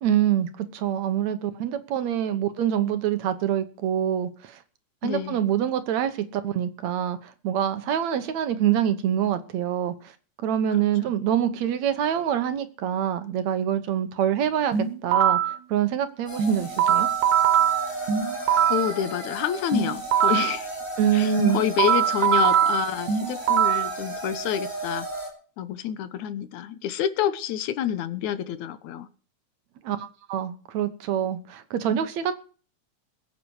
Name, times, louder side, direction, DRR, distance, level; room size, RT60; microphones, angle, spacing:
voice 1, 0.0-4.6 5.0-10.1 10.4-17.1 21.0-21.6 29.8-32.3, right 10 dB, 70° right, 11 dB, 2.4 m, -25 dB
voice 2, 5.0-5.4 11.0-11.1 18.0-18.1 18.7-20.7 21.1-25.1 25.6-29.1, left 10 dB, 80° left, 13 dB, 2.3 m, -28 dB
sound 1, 14.7-15.6 16.4-18.9 19.7-20.6 21.4-23.9, right 9 dB, 85° right, 2.8 m, -22 dB
sound 2, 16.3-25.3, right 2 dB, 5° left, 4.1 m, -34 dB
21.5 x 8.5 x 4.8 m, 0.40 s
omnidirectional pair, 3.4 m